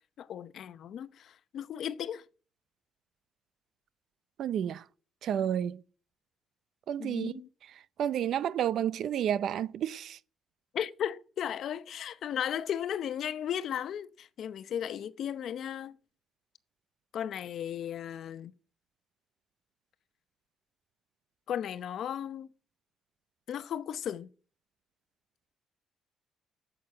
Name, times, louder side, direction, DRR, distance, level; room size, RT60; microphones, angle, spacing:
voice 1, 0.2-2.2 7.0-7.5 10.7-16.0 17.1-18.5 21.5-22.5 23.5-24.3, left 9 dB, 70° left, 0.7 m, -35 dB
voice 2, 4.4-4.8 5.2-5.8 6.9-7.3 8.0-10.2, right 9 dB, 70° right, 0.6 m, -30 dB
8.7 x 8.0 x 9.2 m
cardioid pair, 90°, 0 cm